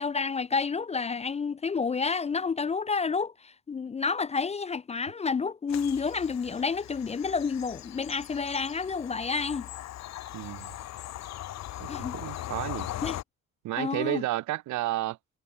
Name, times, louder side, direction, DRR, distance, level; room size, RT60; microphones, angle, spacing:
voice 1, 0.0-9.7 11.9-12.2 13.0-13.2 13.8-14.2, left 5 dB, 25° left, 0.3 m, -30 dB
Bird vocalization bird call bird song / Train, 5.7-13.2, left 13 dB, 60° left, 0.7 m, -40 dB
voice 2, 10.3-10.7 11.8-12.9 13.6-15.2, right 16 dB, 70° right, 0.6 m, -32 dB
cardioid pair, 90°, 30 cm